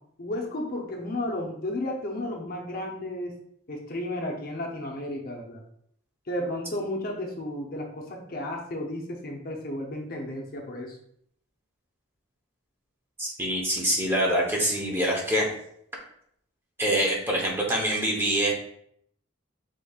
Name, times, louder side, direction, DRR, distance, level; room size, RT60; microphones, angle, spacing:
voice 1, 0.2-3.4 3.7-5.6 6.3-11.0, left 1 dB, 50° left, 0 dB, 0.7 m, -33 dB
voice 2, 13.2-15.5 16.8-18.5, right 1 dB, 10° right, -2 dB, 0.9 m, -25 dB
5.1 x 3.7 x 2.4 m, 0.70 s
head